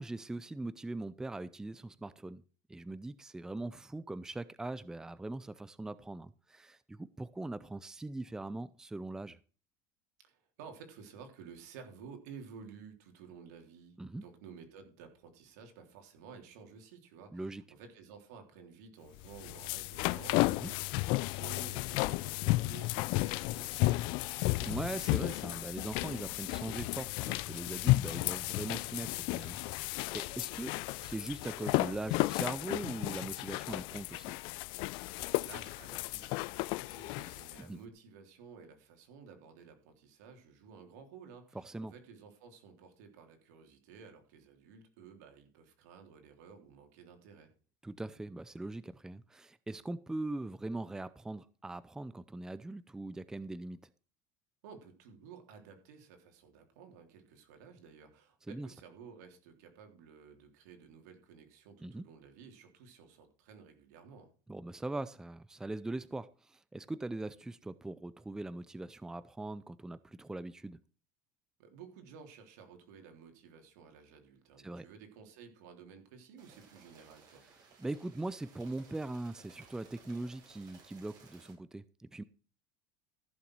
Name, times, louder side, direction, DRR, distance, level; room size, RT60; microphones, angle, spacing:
voice 1, 0.0-2.4 2.7-9.4 14.0-14.2 17.3-17.6 20.6-20.7 24.6-34.3 37.6-37.8 41.5-41.9 47.8-53.8 58.5-58.7 61.8-62.1 64.5-70.8 74.6-74.8 77.8-82.2, right 2 dB, 5° right, 0.5 m, -41 dB
voice 2, 10.2-24.3 35.3-47.5 54.6-64.3 71.6-77.4, right 6 dB, 85° right, 3.4 m, -53 dB
sound 1, 19.2-37.6, left 22 dB, 65° left, 0.4 m, -33 dB
sound 2, 76.4-81.5, right 5 dB, 45° right, 6.5 m, -59 dB
14.5 x 7.0 x 4.7 m
supercardioid pair, 130°, 9 cm